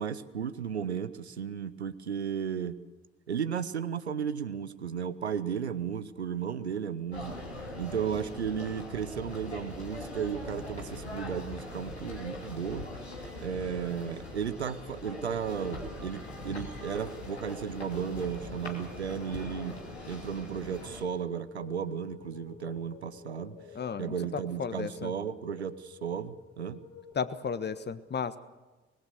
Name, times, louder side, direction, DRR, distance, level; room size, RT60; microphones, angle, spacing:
voice 1, 0.0-2.8 3.3-7.4 7.8-12.9 13.4-19.8 20.1-23.6 24.0-26.8, right 7 dB, 85° right, 13 dB, 0.7 m, -34 dB
sound 1, 7.1-21.0, left 1 dB, 85° left, 2.7 m, -41 dB
sound 2, 17.0-27.1, left 6 dB, 60° left, 5.4 m, -50 dB
voice 2, 23.7-25.1 27.1-28.4, left 6 dB, 30° left, 13 dB, 1.4 m, -34 dB
25.0 x 21.0 x 6.7 m, 1.2 s
figure-of-eight pair, 45°, 32 cm